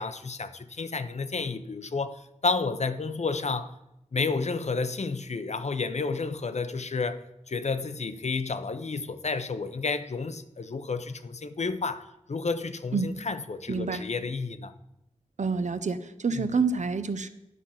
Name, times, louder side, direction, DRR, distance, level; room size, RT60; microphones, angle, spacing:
voice 1, 0.0-3.7 4.1-14.7 16.3-16.5, left 4 dB, 65° left, 11 dB, 0.7 m, -31 dB
voice 2, 13.7-14.0 15.4-17.3, right 4 dB, 75° right, 11 dB, 0.7 m, -28 dB
11.0 x 6.0 x 5.7 m, 0.88 s
wide cardioid pair, 70°, 12 cm